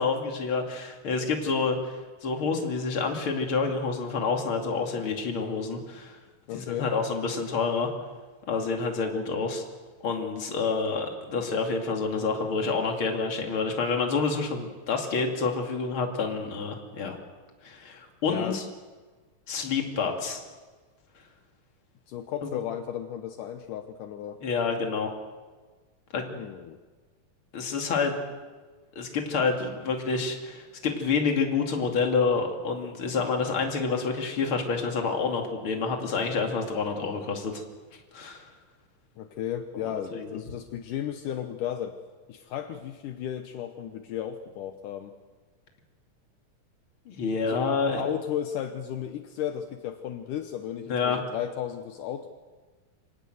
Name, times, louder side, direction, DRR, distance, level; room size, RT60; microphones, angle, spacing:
voice 1, 0.0-6.2 6.5-7.9 8.5-9.6 10.0-17.2 17.6-18.6 19.5-20.4 22.4-22.5 24.4-25.1 26.1-26.4 27.5-28.2 29.0-37.6 38.1-38.5 40.1-40.4 47.1-48.0 50.9-51.2, left 4 dB, 40° left, 3 dB, 3.1 m, -28 dB
voice 2, 6.5-6.9 18.3-18.6 22.1-24.4 26.3-26.8 39.2-42.0 42.3-45.1 47.4-47.6 48.0-52.3, left 10 dB, 75° left, 7 dB, 2.5 m, -34 dB
26.0 x 18.0 x 7.9 m, 1.4 s
omnidirectional pair, 3.8 m